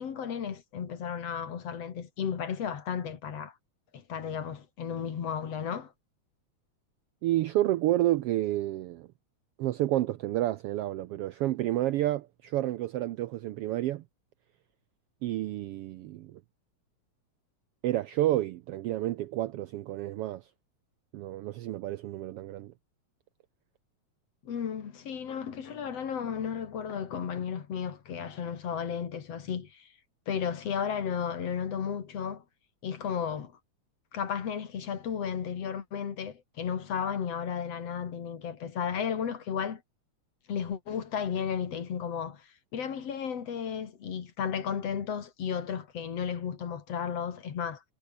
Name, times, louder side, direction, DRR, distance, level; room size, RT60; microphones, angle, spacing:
voice 1, 0.0-3.5 3.9-5.9 24.4-29.9 30.3-32.4 32.8-33.5 34.1-39.8 40.5-47.8, left 7 dB, 60° left, 3.1 m, -34 dB
voice 2, 7.2-9.1 9.6-14.0 15.2-16.4 17.8-20.4 21.1-22.7, right 14 dB, 80° right, 1.3 m, -30 dB
omnidirectional pair, 3.3 m